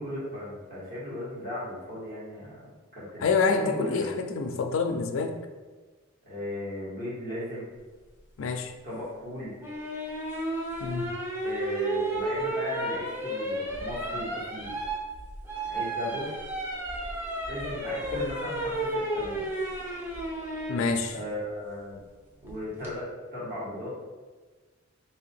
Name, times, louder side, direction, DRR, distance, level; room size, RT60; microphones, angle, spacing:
voice 1, 0.0-2.6 2.9-3.3 3.6-4.2 6.3-7.7 8.8-9.5 11.4-14.7 15.7-16.3 17.5-19.4 21.1-22.0 22.4-24.0, left 1 dB, 40° right, -7 dB, 1.5 m, -36 dB
voice 2, 3.2-5.4 8.4-8.7 10.8-11.1 20.7-21.2, left 4 dB, 65° left, 6 dB, 0.4 m, -27 dB
sound 1, 9.6-20.8 22.5-22.9, right 1 dB, 10° right, 0.6 m, -32 dB
3.2 x 2.7 x 4.3 m, 1.3 s
head